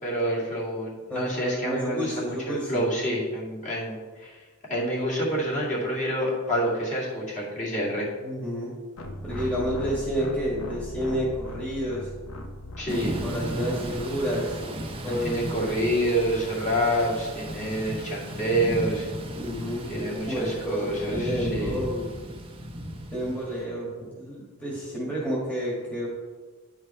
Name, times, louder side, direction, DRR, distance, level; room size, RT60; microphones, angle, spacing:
voice 1, 0.0-4.4 4.7-8.1 12.8-13.2 15.1-19.1 19.9-21.8, equal, 35° left, -6 dB, 2.3 m, -28 dB
voice 2, 1.1-2.8 8.2-8.7 9.2-12.1 13.2-14.6 15.0-15.5 19.3-22.1 23.1-26.1, equal, 5° left, -6 dB, 1.7 m, -30 dB
sound 1, 9.0-15.4, left 1 dB, 75° left, 0.9 m, -39 dB
Thunder / Rain, 12.9-23.6, right 1 dB, 25° right, 0.8 m, -35 dB
10.0 x 4.8 x 4.3 m, 1.4 s
head